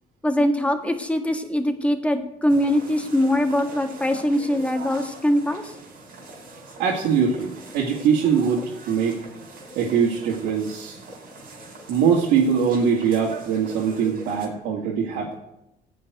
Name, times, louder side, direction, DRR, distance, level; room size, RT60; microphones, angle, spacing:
voice 1, 0.2-5.6, left 1 dB, 5° left, 5 dB, 1.8 m, -22 dB
sound 1, 2.5-14.5, right 2 dB, 60° right, 4.6 m, -42 dB
voice 2, 6.8-9.2 9.8-11.0 11.9-15.3, right 6 dB, 90° right, -3 dB, 2.1 m, -22 dB
15.5 x 5.5 x 9.5 m, 0.87 s
cardioid pair, 110°, 17 cm